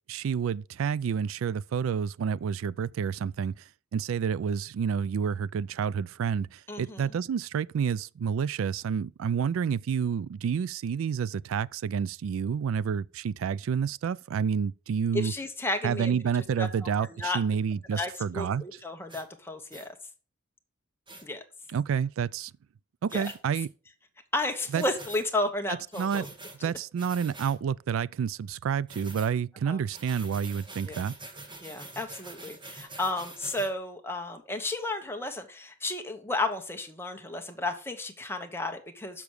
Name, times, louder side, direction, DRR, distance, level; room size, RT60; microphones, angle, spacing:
voice 1, 0.1-3.6 3.9-15.3 15.8-18.7 21.7-22.5 23.0-23.7 24.7-24.8 25.7-26.3 26.6-31.2, right 7 dB, 90° right, 0.3 m, -29 dB
voice 2, 6.7-7.1 15.1-16.2 16.6-17.4 17.9-19.9 21.2-21.4 23.1-23.3 24.3-26.3 29.6-29.8 30.9-31.0 31.6-39.2, left 2 dB, 10° left, 1.1 m, -33 dB
sound 1, 19.1-19.3 19.7-19.9 21.1-21.2 23.1-23.4 24.7-25.3 25.9-26.6 27.0-27.6 28.9-29.3 29.9-33.7, right 2 dB, 25° right, 1.6 m, -45 dB
6.9 x 5.9 x 6.5 m
head